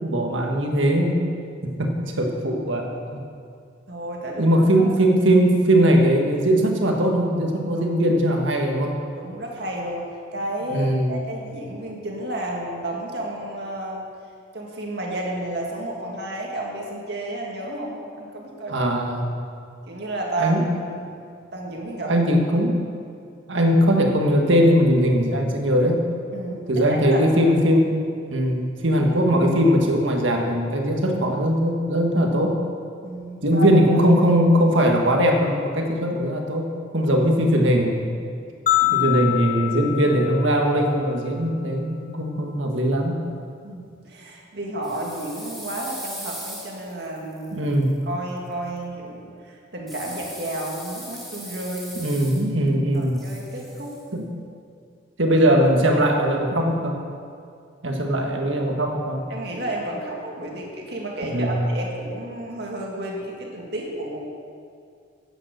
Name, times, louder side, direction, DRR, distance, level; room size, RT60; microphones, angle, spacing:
voice 1, 0.0-1.2 1.6-3.2 4.4-8.9 10.7-11.2 18.7-19.3 20.4-20.7 22.0-22.8 23.5-26.0 26.7-28.0 28.3-32.6 33.4-36.6 36.9-38.0 38.9-43.1 47.5-47.9 51.9-53.2 54.1-54.2 55.2-57.0 57.8-59.2 61.3-61.6, equal, 80° right, 1 dB, 1.7 m, -20 dB
voice 2, 3.9-4.5 4.8-4.9 7.7-7.8 9.2-10.1 10.3-14.0 14.5-18.8 19.9-21.2 21.5-22.1 22.5-22.6 26.3-27.2 27.5-27.8 33.0-34.0 38.8-39.1 43.6-47.7 48.1-52.0 52.9-53.9 59.3-64.2, right 1 dB, 55° right, -1 dB, 2.2 m, -32 dB
sound 1, 38.7-41.0, left 16 dB, 45° left, 0.3 m, -25 dB
sound 2, 44.8-47.9 49.9-52.7 52.9-54.0, equal, ahead, 1.7 m, -39 dB
10.5 x 9.2 x 6.6 m, 2.3 s
head